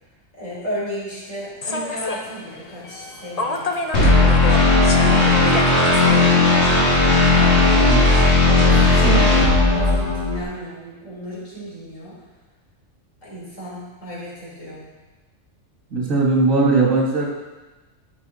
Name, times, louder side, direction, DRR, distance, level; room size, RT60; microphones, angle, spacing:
voice 1, 0.4-3.7 4.2-5.6 7.5-9.1 9.6-12.1 13.2-14.9, equal, 80° left, -7 dB, 4.1 m, -34 dB
Human voice / Subway metro underground, 1.6-7.3, left 2 dB, 35° left, 0.7 m, -30 dB
sound 1, 3.9-10.4, left 2 dB, 55° left, 2.5 m, -15 dB
voice 2, 7.8-8.2 8.7-9.3 15.9-17.3, right 3 dB, 90° right, -2 dB, 2.2 m, -20 dB
12.5 x 6.8 x 4.1 m, 1.2 s
omnidirectional pair, 1.3 m